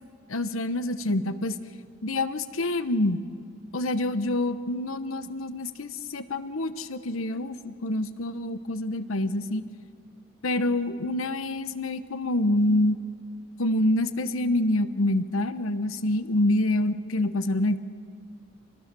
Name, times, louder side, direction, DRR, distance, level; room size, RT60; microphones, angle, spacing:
voice 1, 0.3-1.6 2.0-3.2 3.7-9.6 10.4-13.0 13.6-17.8, left 1 dB, 85° left, 12 dB, 1.1 m, -26 dB
27.0 x 20.5 x 6.9 m, 2.2 s
head